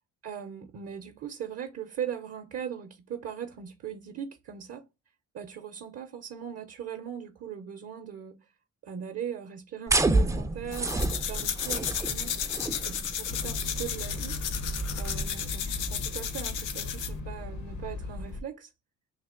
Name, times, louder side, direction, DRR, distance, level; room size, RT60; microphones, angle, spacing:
voice 1, 0.2-4.8 5.3-8.4 8.8-12.3 12.9-14.4 14.9-18.7, right 8 dB, 55° right, 0.6 m, -39 dB
sound 1, 9.9-15.9, right 2 dB, 10° right, 0.4 m, -30 dB
sound 2, 10.7-17.2, left 9 dB, 85° left, 0.6 m, -34 dB
sound 3, 13.3-18.4, left 2 dB, 70° left, 1.0 m, -37 dB
3.3 x 2.9 x 3.7 m
cardioid pair, 90°, 30 cm